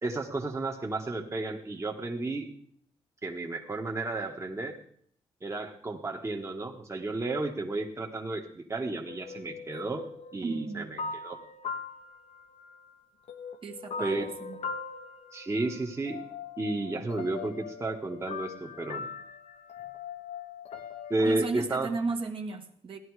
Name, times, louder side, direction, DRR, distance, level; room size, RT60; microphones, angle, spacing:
voice 1, 0.0-2.5 3.2-4.8 5.4-10.0 10.3-11.4 14.0-14.2 15.3-16.2 16.6-19.1 21.1-21.9, right 2 dB, 25° right, 2 dB, 1.5 m, -32 dB
sound 1, 9.1-13.0 13.3-21.3, left 5 dB, 70° left, 1.1 m, -41 dB
voice 2, 10.4-10.9 13.6-14.6 21.2-23.0, right 4 dB, 50° right, 4 dB, 1.7 m, -34 dB
16.0 x 11.0 x 4.8 m, 0.62 s
cardioid pair, 105°, 11 cm